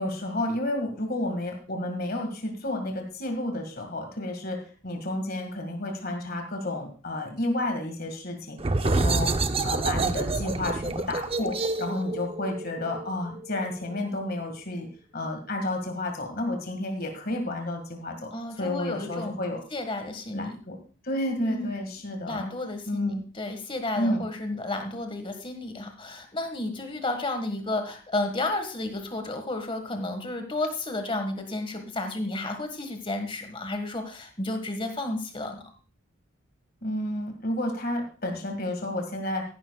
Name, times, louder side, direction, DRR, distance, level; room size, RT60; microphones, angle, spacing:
voice 1, 0.0-8.6 8.8-14.9 15.1-18.3 18.6-19.6 20.3-20.8 21.0-22.4 22.9-23.2 24.0-24.3 36.8-39.4, left 1 dB, 45° left, 4 dB, 1.9 m, -31 dB
sound 1, 8.6-14.0, right 3 dB, 25° right, 0.5 m, -28 dB
voice 2, 18.3-19.4 19.7-20.6 21.4-21.7 22.3-35.6, left 2 dB, 25° left, 6 dB, 1.6 m, -32 dB
15.0 x 11.5 x 2.3 m, 0.37 s
head